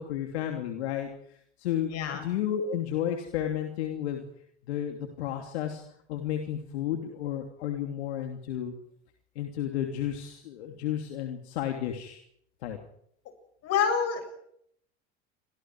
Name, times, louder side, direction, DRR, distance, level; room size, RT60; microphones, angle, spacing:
voice 1, 0.0-1.9 2.2-4.2 4.7-5.8 6.1-8.7 9.3-12.2 12.6-12.8, left 10 dB, 75° left, 3 dB, 2.9 m, -32 dB
voice 2, 1.9-2.2 13.6-14.3, left 7 dB, 50° left, 6 dB, 7.6 m, -27 dB
29.0 x 24.0 x 4.8 m, 0.71 s
hypercardioid pair, 85°, 33 cm